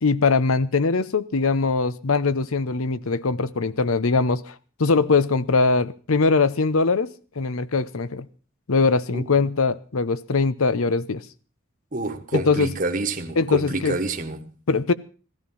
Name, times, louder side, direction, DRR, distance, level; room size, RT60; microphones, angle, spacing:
voice 1, 0.0-4.5 4.8-8.3 8.7-11.2 12.3-12.7 13.4-14.0 14.7-14.9, left 4 dB, 85° left, 0.8 m, -21 dB
voice 2, 11.9-14.5, right 2 dB, 40° right, 1.2 m, -27 dB
16.5 x 13.5 x 5.6 m
head